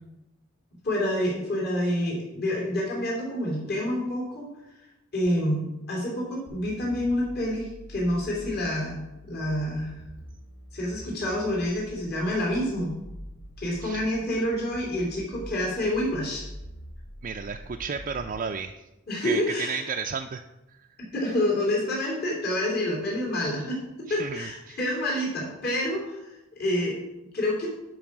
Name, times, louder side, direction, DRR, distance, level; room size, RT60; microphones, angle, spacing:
voice 1, 0.8-4.4 5.1-10.0 10.7-12.9 13.6-16.4 19.1-19.8 21.1-26.9 27.3-27.7, left 1 dB, 55° left, -2 dB, 3.0 m, -28 dB
sound 1, 6.5-18.4, equal, 80° left, 2.6 m, -45 dB
voice 2, 17.2-18.7 19.2-20.4 24.1-24.8, right 6 dB, 40° right, 3 dB, 0.4 m, -33 dB
11.5 x 4.8 x 6.0 m, 0.95 s
head